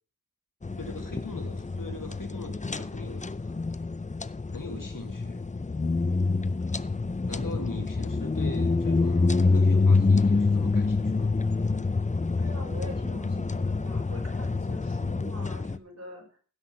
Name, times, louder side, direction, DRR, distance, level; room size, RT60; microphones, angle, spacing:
sound 1, 0.6-15.8, left 3 dB, 25° left, 0.5 m, -26 dB
voice 1, 0.8-3.5 4.5-5.4 7.3-11.4, left 2 dB, 90° left, 4 dB, 2.1 m, -41 dB
voice 2, 7.7-8.0 12.4-16.4, equal, 55° right, 0 dB, 5.5 m, -45 dB
16.0 x 6.2 x 5.8 m, 0.39 s
wide cardioid pair, 45°, 32 cm